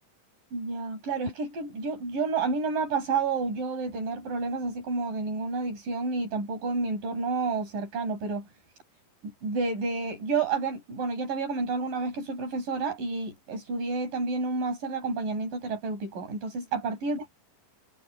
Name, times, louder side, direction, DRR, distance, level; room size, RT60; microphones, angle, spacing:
voice 1, 0.5-8.5 9.4-17.4, right 4 dB, 70° right, 8.5 m, -30 dB
omnidirectional pair, 3.9 m